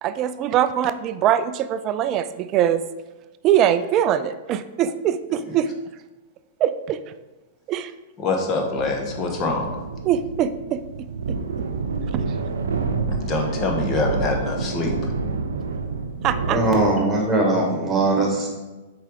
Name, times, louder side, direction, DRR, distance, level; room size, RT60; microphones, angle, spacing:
voice 1, 0.0-2.8 3.4-5.7 6.6-7.0 7.7-7.9 10.1-10.8 11.3-11.4 16.2-16.6, right 10 dB, 35° right, 13 dB, 0.4 m, -22 dB
voice 2, 8.2-9.7 13.1-15.1, left 3 dB, 30° left, 2 dB, 1.2 m, -25 dB
sound 1, 8.8-17.1, right 4 dB, 70° right, 0.7 m, -28 dB
voice 3, 16.5-18.5, right 2 dB, 10° right, -1 dB, 2.2 m, -20 dB
7.2 x 4.9 x 3.6 m, 1.2 s
figure-of-eight pair, 100°, 0 cm